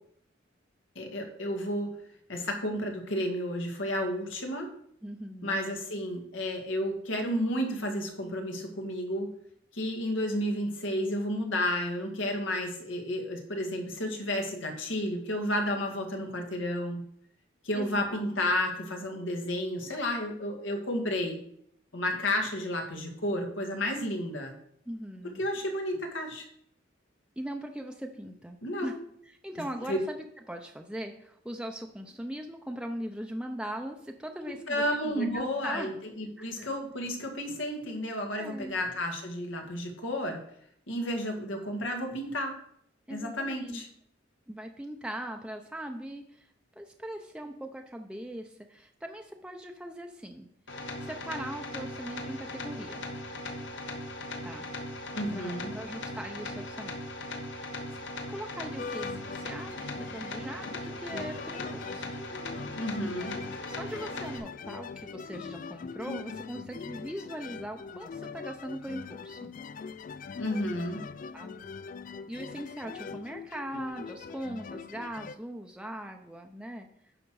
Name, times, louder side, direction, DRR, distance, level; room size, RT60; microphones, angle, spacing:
voice 1, 1.0-2.0 2.3-4.7 5.4-9.3 9.7-17.0 17.6-21.4 21.9-24.5 25.2-26.5 28.6-28.9 29.9-30.0 34.7-40.4 40.9-42.6 43.1-43.9 55.1-55.7 62.8-63.4 70.4-71.0, left 1 dB, 90° left, 3 dB, 1.9 m, -32 dB
voice 2, 5.0-5.6 17.7-18.2 24.9-25.4 27.4-28.9 29.2-35.9 36.4-36.7 38.3-38.8 43.1-43.8 44.5-46.5 46.8-50.5 51.0-53.0 54.4-54.7 55.3-57.0 58.3-62.1 63.2-63.3 63.7-69.5 71.3-71.7 72.3-76.9, right 1 dB, 5° right, 3 dB, 0.6 m, -40 dB
sound 1, 50.7-64.4, left 2 dB, 70° left, 1.3 m, -39 dB
sound 2, 58.8-75.4, left 5 dB, 45° left, 0.3 m, -42 dB
9.9 x 6.3 x 4.7 m, 0.69 s
head